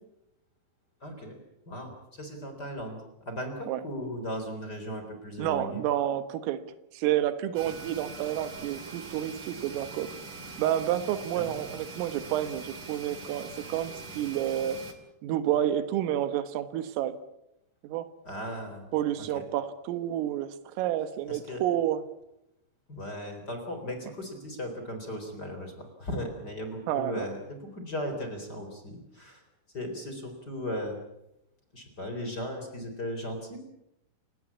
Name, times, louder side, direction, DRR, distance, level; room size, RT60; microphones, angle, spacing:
voice 1, 1.0-1.4 1.7-5.8 11.3-11.7 18.2-18.9 19.2-19.5 21.3-21.6 22.9-29.4 29.7-31.0 31.7-33.6, equal, 20° left, 5 dB, 3.7 m, -37 dB
voice 2, 5.4-6.6 6.9-10.1 10.6-14.8 15.2-17.2 17.8-18.1 18.9-22.0 26.9-27.3, right 12 dB, 85° right, 12 dB, 3.9 m, -29 dB
sound 1, 7.5-14.9, right 3 dB, 40° right, 2.4 m, -43 dB
28.5 x 17.0 x 8.5 m, 0.85 s
omnidirectional pair, 5.8 m